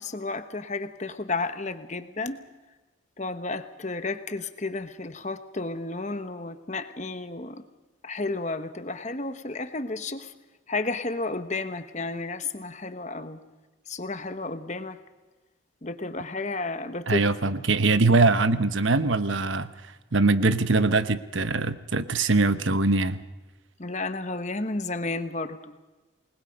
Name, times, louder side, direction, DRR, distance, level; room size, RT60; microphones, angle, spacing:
voice 1, 0.0-2.4 3.2-7.6 8.0-10.3 10.7-13.4 13.9-15.0 15.8-17.2 23.8-25.7, left 3 dB, 35° left, 10 dB, 1.2 m, -32 dB
voice 2, 17.1-19.7 20.1-23.2, right 3 dB, 65° right, 12 dB, 1.1 m, -22 dB
28.0 x 20.5 x 5.3 m, 1.2 s
head